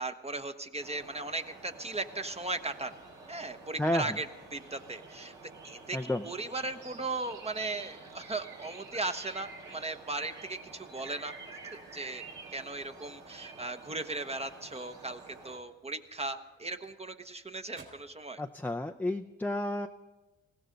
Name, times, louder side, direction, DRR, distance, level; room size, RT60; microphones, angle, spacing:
voice 1, 0.0-2.9 3.3-4.3 4.5-5.3 5.6-11.3 11.7-12.3 12.5-18.4, right 2 dB, 20° right, 8 dB, 1.0 m, -37 dB
sound 1, 0.8-15.6, right 3 dB, 75° right, 4.0 m, -49 dB
voice 2, 3.8-4.2 5.9-6.2 18.4-19.9, left 1 dB, 5° left, 4 dB, 0.6 m, -31 dB
sound 2, 11.6-13.7 14.1-14.3 14.7-14.8 15.5-17.4 17.7-18.2, right 3 dB, 45° right, 3.5 m, -60 dB
20.0 x 16.0 x 3.9 m, 1.1 s
supercardioid pair, 55°, 30 cm